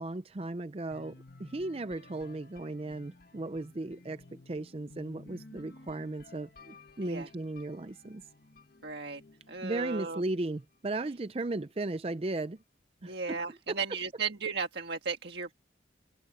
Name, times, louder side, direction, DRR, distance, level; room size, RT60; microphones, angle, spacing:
voice 1, 0.0-8.2 9.6-12.6 13.0-13.4 13.7-13.8, right 2 dB, 30° right, 0.5 m, -36 dB
sound 1, 0.9-10.7, left 2 dB, 50° left, 1.6 m, -55 dB
voice 2, 8.8-9.2 9.5-10.2 13.0-15.5, right 5 dB, 65° right, 1.6 m, -35 dB
head